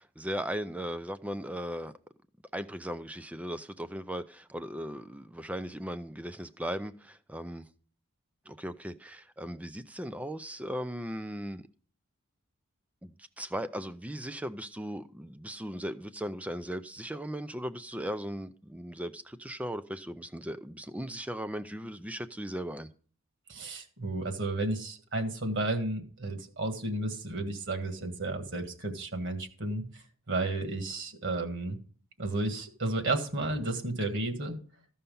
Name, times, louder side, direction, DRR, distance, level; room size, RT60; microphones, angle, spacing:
voice 1, 0.0-1.9 2.5-7.6 8.5-11.6 13.0-22.9, equal, 5° right, 0.4 m, -37 dB
voice 2, 23.5-31.8 32.2-34.6, right 2 dB, 55° right, 1.6 m, -32 dB
14.5 x 5.7 x 5.4 m
head